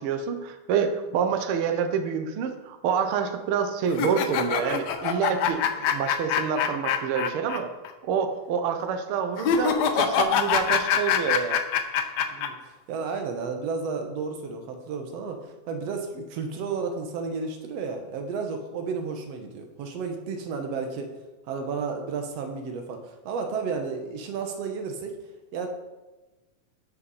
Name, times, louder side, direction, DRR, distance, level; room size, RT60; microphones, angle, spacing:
voice 1, 0.0-7.7 8.0-11.6, right 7 dB, 85° right, 7 dB, 1.2 m, -27 dB
sound 1, 3.9-7.6 7.9-8.0 9.4-12.5, left 7 dB, 70° left, 1.7 m, -24 dB
voice 2, 12.3-21.1 21.5-25.2 25.5-25.7, right 5 dB, 65° right, 5 dB, 1.9 m, -32 dB
12.5 x 5.8 x 4.1 m, 1.1 s
omnidirectional pair, 3.5 m